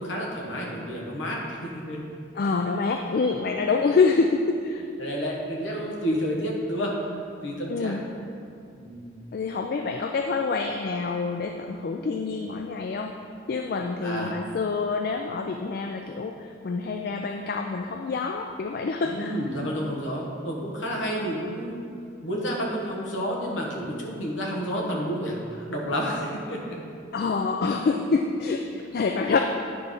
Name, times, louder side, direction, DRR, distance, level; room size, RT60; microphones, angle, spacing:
voice 1, 0.0-2.0 5.0-6.9 7.4-7.9 8.8-9.1 14.0-14.4 19.0-21.8 22.2-26.6, equal, 80° left, -2 dB, 1.3 m, -30 dB
voice 2, 2.3-4.9 7.7-8.0 9.3-13.2 13.5-19.3 19.8-19.9 27.1-29.4, left 4 dB, 50° left, 4 dB, 0.3 m, -26 dB
9.5 x 3.4 x 5.3 m, 2.4 s
head